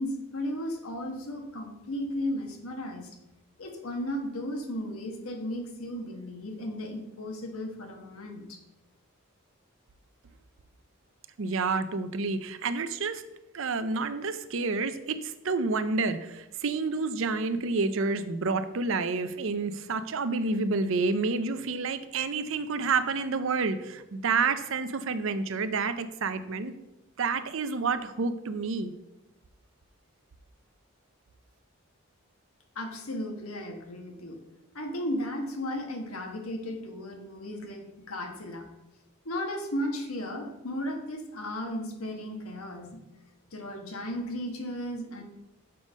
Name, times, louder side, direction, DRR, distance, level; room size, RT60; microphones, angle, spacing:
voice 1, 0.0-3.1 3.6-8.6 32.7-34.4 34.7-38.6 39.2-43.0 43.5-45.2, left 1 dB, 80° left, 3 dB, 1.4 m, -35 dB
voice 2, 11.4-13.2 13.5-26.7 27.2-28.9, right 4 dB, 65° right, 11 dB, 0.5 m, -29 dB
6.7 x 5.4 x 5.2 m, 0.94 s
head